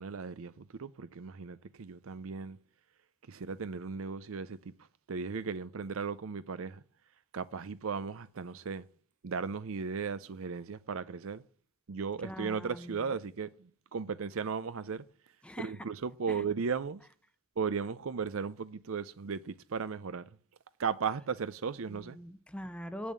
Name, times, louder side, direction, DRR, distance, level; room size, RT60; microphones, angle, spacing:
voice 1, 0.0-2.6 3.3-4.7 5.1-6.8 7.3-8.9 9.2-11.4 11.9-15.0 15.6-17.0 17.6-20.3 20.8-22.2, right 5 dB, 65° right, 0.5 m, -36 dB
voice 2, 12.2-13.1 15.4-15.7 16.3-16.4 21.9-23.1, equal, 5° left, 0.8 m, -42 dB
8.2 x 7.1 x 8.6 m
head